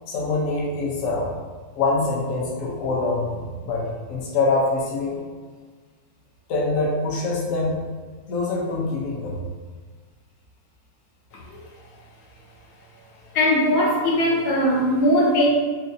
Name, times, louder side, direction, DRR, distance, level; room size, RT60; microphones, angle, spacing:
voice 1, 0.1-1.3 1.7-5.2 6.5-7.8 8.3-9.3, left 3 dB, 65° left, -4 dB, 1.0 m, -24 dB
voice 2, 13.3-15.5, left 1 dB, 85° left, -3 dB, 1.2 m, -20 dB
3.7 x 2.3 x 2.6 m, 1.4 s
omnidirectional pair, 1.7 m